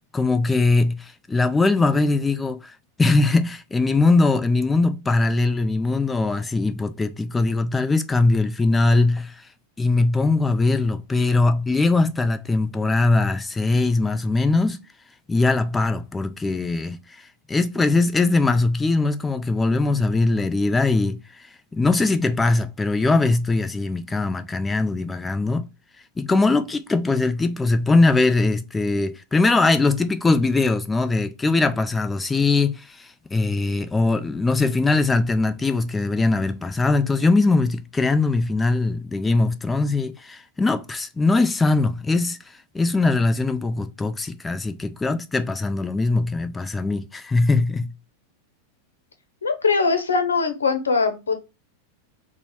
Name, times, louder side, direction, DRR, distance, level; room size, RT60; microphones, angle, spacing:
voice 1, 0.1-2.7 3.0-9.4 9.8-14.8 15.3-17.0 17.5-21.5 21.7-25.7 26.2-47.9, left 3 dB, 10° left, 0.3 m, -21 dB
voice 2, 49.4-51.3, left 4 dB, 70° left, 0.7 m, -21 dB
4.0 x 2.0 x 4.5 m
figure-of-eight pair, 90°, 0 cm